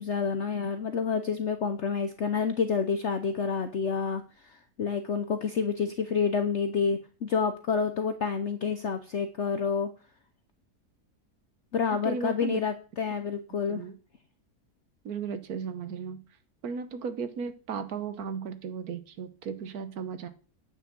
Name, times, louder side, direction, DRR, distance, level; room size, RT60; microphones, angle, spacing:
voice 1, 0.0-9.9 11.7-13.8, left 5 dB, 55° left, 8 dB, 1.0 m, -29 dB
voice 2, 12.0-12.6 13.7-13.9 15.0-16.2 16.6-20.3, right 6 dB, 70° right, 10 dB, 1.5 m, -35 dB
9.0 x 6.0 x 7.5 m, 0.38 s
omnidirectional pair, 1.7 m